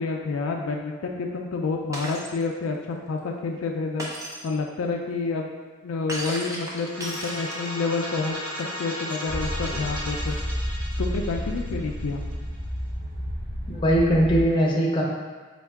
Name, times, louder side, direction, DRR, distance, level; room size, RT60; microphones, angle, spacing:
voice 1, 0.0-4.1 4.4-5.5 5.8-8.4 8.8-10.4 11.0-12.2, left 4 dB, 75° left, 2 dB, 0.3 m, -29 dB
Shatter, 1.9-2.4 4.0-4.5 6.1-7.8, right 1 dB, 15° right, 0.5 m, -34 dB
sound 1, 6.8-12.5, equal, 90° right, 1.0 m, -35 dB
sound 2, 9.3-14.4, equal, 40° right, 1.1 m, -31 dB
voice 2, 13.7-15.0, equal, 25° left, -3 dB, 0.6 m, -20 dB
4.3 x 2.3 x 3.4 m, 1.4 s
head